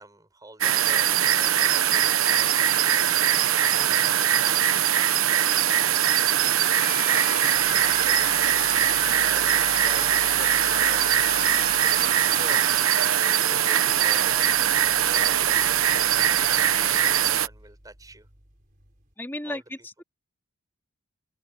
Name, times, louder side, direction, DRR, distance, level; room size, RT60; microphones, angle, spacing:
voice 1, 0.0-2.9 3.7-4.7 6.5-8.3 9.2-12.7 13.5-18.3 19.4-19.6, right 2 dB, 15° right, 5.5 m, -45 dB
sound 1, 0.6-17.5, right 10 dB, 75° right, 1.0 m, -21 dB
sound 2, 6.6-14.1, left 6 dB, 30° left, 0.8 m, -36 dB
sound 3, 7.5-19.1, equal, 40° right, 4.2 m, -50 dB
voice 2, 19.2-20.0, left 1 dB, 10° left, 2.8 m, -34 dB
open air
head